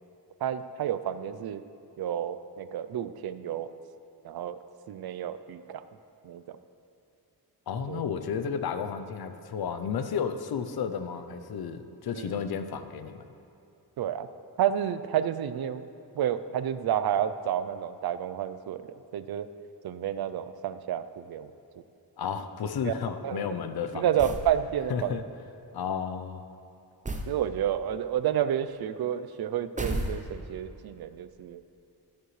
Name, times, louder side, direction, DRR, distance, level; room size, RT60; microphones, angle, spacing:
voice 1, 0.4-1.6 2.0-3.7 4.2-4.6 4.9-5.9 6.2-6.6 7.9-8.0 12.1-12.4 14.0-14.3 14.6-15.8 16.1-18.8 19.1-19.5 19.8-21.5 22.8-22.9 23.2-25.2 27.3-31.6, right 10 dB, 65° right, 12 dB, 0.5 m, -30 dB
voice 2, 7.7-13.3 22.2-24.1 24.9-25.2 25.7-26.4, left 7 dB, 65° left, 10 dB, 0.6 m, -32 dB
sound 1, 24.2-24.5 27.0-27.4 29.8-30.6, right 1 dB, 20° right, 0.6 m, -32 dB
13.0 x 11.0 x 3.2 m, 2.7 s
wide cardioid pair, 150°, 41 cm